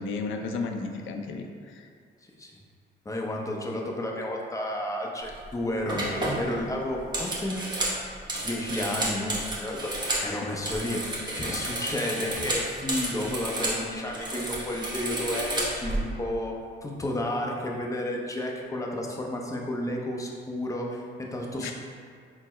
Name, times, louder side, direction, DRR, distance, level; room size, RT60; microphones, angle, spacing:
voice 1, 0.0-1.5 10.1-10.5 21.6-21.7, left 4 dB, 80° left, 4 dB, 0.4 m, -33 dB
voice 2, 3.1-7.6 8.4-9.9 10.2-11.0 11.4-21.7, left 1 dB, 15° left, -1 dB, 0.6 m, -32 dB
sound 1, 5.3-5.5 5.9-10.3 10.6-13.8 14.1-16.0, right 1 dB, 20° right, 1.0 m, -31 dB
4.3 x 2.0 x 4.1 m, 2.1 s
cardioid pair, 90°, 20 cm